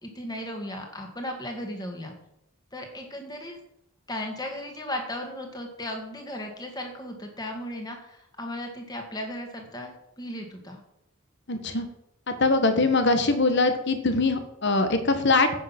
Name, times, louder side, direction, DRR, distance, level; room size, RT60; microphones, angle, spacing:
voice 1, 0.0-2.1 2.7-3.6 4.1-10.8, left 1 dB, 20° left, 3 dB, 2.1 m, -36 dB
voice 2, 11.5-11.8 12.3-15.6, left 3 dB, 55° left, 8 dB, 1.4 m, -22 dB
10.0 x 7.8 x 6.0 m, 0.80 s
head